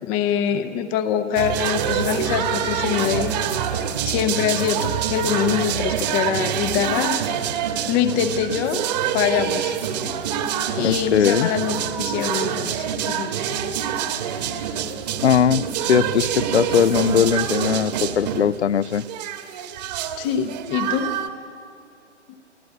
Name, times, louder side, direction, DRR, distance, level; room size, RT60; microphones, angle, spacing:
voice 1, 0.0-3.3 4.1-7.2 7.9-8.8 9.1-9.8 10.0-10.1 10.7-13.3 20.2-21.1, left 8 dB, 15° left, 9 dB, 0.6 m, -24 dB
sound 1, 1.4-21.3, right 9 dB, 35° right, 1.5 m, -26 dB
voice 2, 10.8-11.5 15.2-19.1, left 8 dB, 70° left, 20 dB, 0.6 m, -20 dB
29.0 x 15.5 x 8.1 m, 2.4 s
figure-of-eight pair, 135°, 36 cm